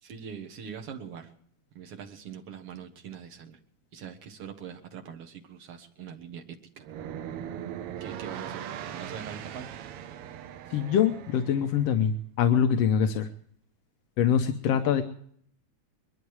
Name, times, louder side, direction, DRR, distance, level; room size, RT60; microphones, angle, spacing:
voice 1, 0.0-1.3 1.7-3.6 3.9-6.9 8.0-8.7 8.9-9.7, right 7 dB, 55° right, 3 dB, 2.2 m, -42 dB
sound 1, 6.8-11.9, right 10 dB, 80° right, 1.3 m, -40 dB
voice 2, 10.7-13.3 14.2-15.0, left 8 dB, 70° left, 6 dB, 1.7 m, -24 dB
22.0 x 12.0 x 4.8 m, 0.63 s
omnidirectional pair, 3.5 m